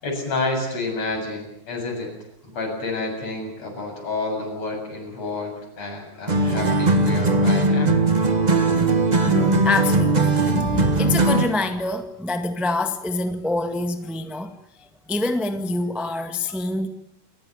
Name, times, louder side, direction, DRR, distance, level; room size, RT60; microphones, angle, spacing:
voice 1, 0.0-2.1 2.5-8.0, left 3 dB, 60° left, 8.8 m, -29 dB
sound 1, 6.3-11.6, right 2 dB, 85° right, 0.4 m, -19 dB
voice 2, 9.2-14.5 15.1-16.9, left 2 dB, ahead, 1.0 m, -26 dB
28.5 x 15.0 x 9.8 m
omnidirectional pair, 3.4 m